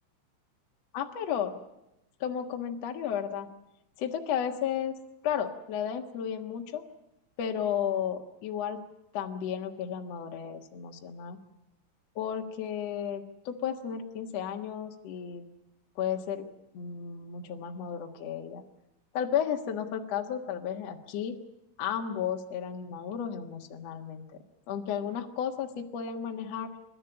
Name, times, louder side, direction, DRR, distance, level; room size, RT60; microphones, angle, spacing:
voice 1, 0.9-1.6 2.2-3.5 4.0-5.0 5.2-6.8 7.4-8.8 9.1-11.4 12.1-15.4 15.9-16.5 16.7-18.6 19.1-21.3 21.8-24.2 24.7-26.7, left 8 dB, 70° left, 4 dB, 1.5 m, -33 dB
28.5 x 13.0 x 9.9 m, 0.90 s
omnidirectional pair, 5.5 m